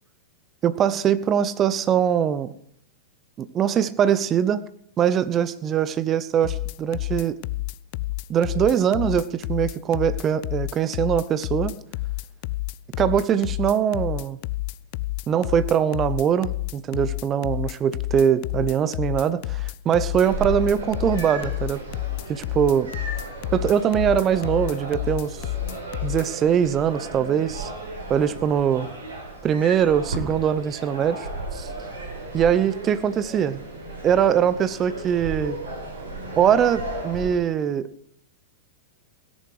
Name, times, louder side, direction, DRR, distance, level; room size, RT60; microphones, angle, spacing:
voice 1, 0.6-2.5 3.4-4.6 5.0-7.4 8.3-11.8 13.0-14.4 15.3-21.8 22.3-22.9 23.5-25.4 26.0-27.7 28.1-28.9 29.4-31.7 32.3-33.6 34.0-35.6 36.4-37.9, right 8 dB, 30° right, 15 dB, 0.9 m, -22 dB
sound 1, 6.4-26.3, left 20 dB, 50° left, 0.5 m, -29 dB
sound 2, 20.2-37.3, right 2 dB, 75° right, 5.8 m, -35 dB
17.0 x 10.5 x 4.9 m, 0.69 s
figure-of-eight pair, 95°, 0 cm